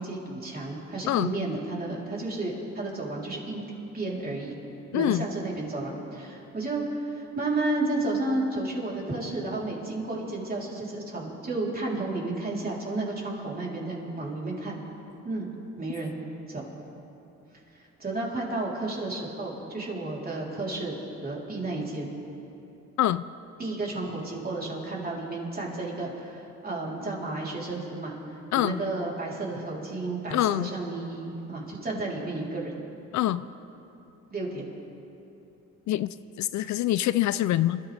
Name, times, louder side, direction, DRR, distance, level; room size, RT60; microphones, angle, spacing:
voice 1, 0.0-3.6 3.9-4.6 4.9-14.8 15.2-15.5 15.8-16.2 16.5-16.7 18.0-20.9 21.2-22.1 23.6-32.7 34.3-34.6 36.6-36.7, right 2 dB, 30° right, -3 dB, 3.7 m, -32 dB
voice 2, 4.9-5.3 23.0-23.2 28.5-28.8 30.3-30.7 33.1-33.4 35.9-37.8, left 13 dB, 65° left, 15 dB, 0.5 m, -25 dB
27.5 x 13.0 x 3.4 m, 3.0 s
cardioid pair, 90°, 30 cm